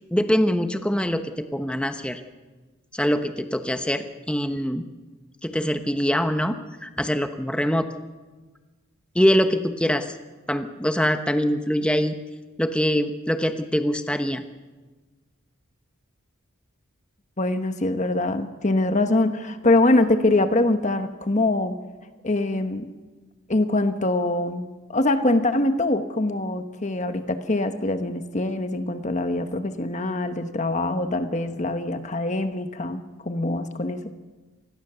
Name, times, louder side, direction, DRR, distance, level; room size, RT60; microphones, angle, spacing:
voice 1, 0.1-2.2 2.9-4.8 5.4-6.5 6.8-7.9 9.1-10.1 10.5-12.1 12.6-14.4, equal, 5° left, 7 dB, 1.0 m, -23 dB
voice 2, 17.4-21.8 22.2-22.9 23.5-34.0, left 2 dB, 35° left, 8 dB, 1.2 m, -23 dB
27.0 x 20.5 x 6.9 m, 1.3 s
head